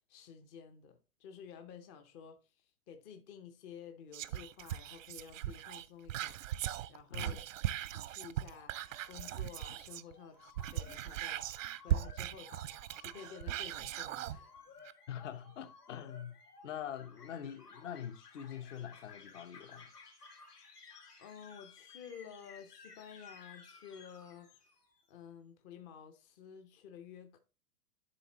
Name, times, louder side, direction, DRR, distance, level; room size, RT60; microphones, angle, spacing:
voice 1, 0.1-6.4 6.9-7.4 7.8-8.7 9.0-14.5 21.2-24.5 25.1-27.4, left 7 dB, 20° left, 0.5 m, -52 dB
Whispering, 4.1-10.1 10.4-14.4 14.8-14.9, right 12 dB, 60° right, 0.5 m, -39 dB
sound 1, 8.5-25.0, left 5 dB, 90° left, 1.7 m, -57 dB
voice 2, 15.1-16.3 16.6-19.9, left 9 dB, 55° left, 0.9 m, -44 dB
10.5 x 3.7 x 2.9 m
hypercardioid pair, 120°, 46 cm